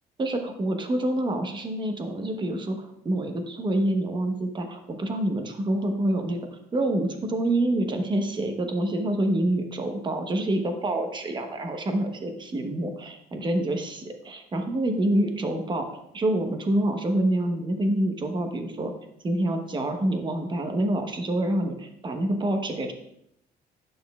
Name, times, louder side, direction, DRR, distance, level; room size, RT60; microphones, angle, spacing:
voice 1, 0.2-6.4 6.7-14.0 14.3-15.9 16.1-18.9 19.2-22.9, right 1 dB, 25° right, 5 dB, 1.0 m, -27 dB
10.0 x 6.4 x 2.4 m, 0.77 s
cardioid pair, 110°, 17 cm